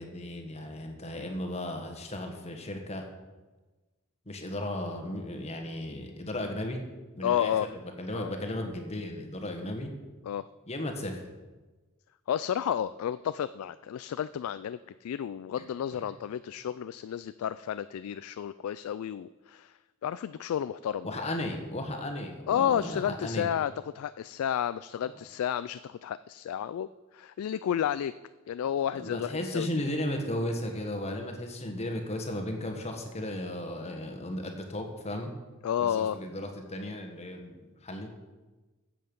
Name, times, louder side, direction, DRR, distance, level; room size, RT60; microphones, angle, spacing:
voice 1, 0.0-3.1 4.3-6.8 7.2-9.9 10.7-11.3 21.0-23.5 29.0-35.3 36.1-38.1, left 1 dB, 30° left, 3 dB, 1.5 m, -35 dB
voice 2, 7.2-7.7 8.1-8.3 10.2-10.5 12.3-21.3 22.5-28.1 28.5-29.9 35.6-36.2, left 9 dB, 90° left, 14 dB, 0.3 m, -31 dB
13.0 x 7.7 x 5.4 m, 1.2 s
head